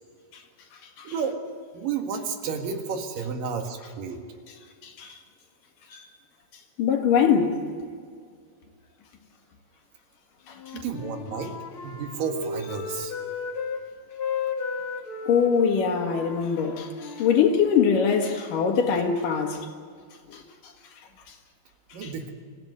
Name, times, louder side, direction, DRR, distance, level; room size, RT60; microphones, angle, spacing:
voice 1, 1.0-1.4 1.7-4.2 10.7-11.5 11.8-13.2 21.9-22.3, right 6 dB, 80° right, 3.5 m, -31 dB
voice 2, 4.8-5.2 5.9-6.1 6.8-7.6 10.5-10.6 15.3-19.7 20.3-20.7 22.0-22.1, left 7 dB, 80° left, 3.6 m, -23 dB
Wind instrument woodwind instrument, 10.5-13.8 14.1-17.9, left 5 dB, 45° left, 2.2 m, -34 dB
25.5 x 15.5 x 8.0 m
omnidirectional pair, 3.8 m